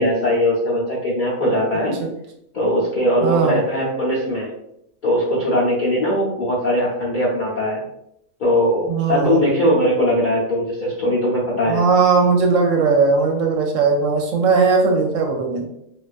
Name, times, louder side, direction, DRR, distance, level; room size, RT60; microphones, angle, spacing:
voice 1, 0.0-2.0 2.5-4.5 5.0-7.8 8.4-11.8, equal, 55° left, -6 dB, 0.5 m, -20 dB
voice 2, 3.2-3.6 8.9-9.4 11.6-15.7, right 4 dB, 70° right, 2 dB, 0.9 m, -18 dB
2.4 x 2.3 x 2.4 m, 0.77 s
omnidirectional pair, 1.5 m